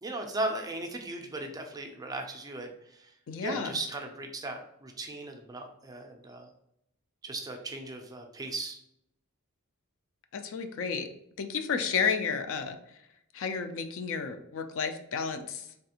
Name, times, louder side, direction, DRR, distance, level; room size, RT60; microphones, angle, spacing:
voice 1, 0.0-3.1 3.4-6.5 7.2-8.8, right 2 dB, 15° right, 3 dB, 0.4 m, -37 dB
voice 2, 3.3-3.7 10.3-11.1 11.4-12.8 13.3-15.7, left 6 dB, 60° left, 7 dB, 0.4 m, -31 dB
3.4 x 2.4 x 2.8 m, 0.78 s
head